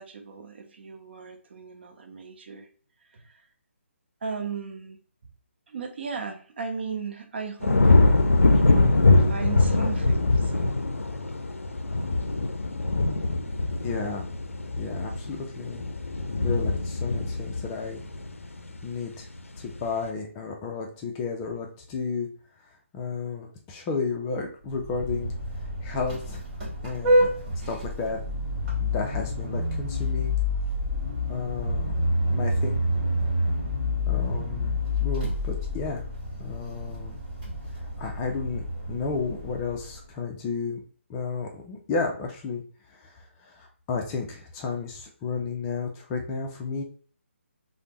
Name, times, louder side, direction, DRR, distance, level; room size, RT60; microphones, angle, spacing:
voice 1, 0.0-2.7 3.1-3.5 4.2-5.0 5.7-8.0 8.5-10.8, right 5 dB, 50° right, 5 dB, 0.6 m, -36 dB
sound 1, 7.6-18.9 19.3-19.8, left 2 dB, 85° left, 0.4 m, -23 dB
voice 2, 13.8-14.3 14.8-15.8 16.4-18.0 18.8-19.3 19.6-22.3 22.9-25.3 25.8-26.4 26.8-27.3 27.7-28.2 28.8-30.4 31.3-32.0 32.3-32.8 34.1-36.0 36.4-37.2 38.0-40.8 41.1-42.6 43.0-43.1 43.5-46.8, left 4 dB, 15° left, 1 dB, 0.3 m, -32 dB
Vehicle horn car horn honking, 24.7-40.1, left 1 dB, 35° right, 1.4 m, -28 dB
3.3 x 2.0 x 2.8 m, 0.44 s
figure-of-eight pair, 145°, 7 cm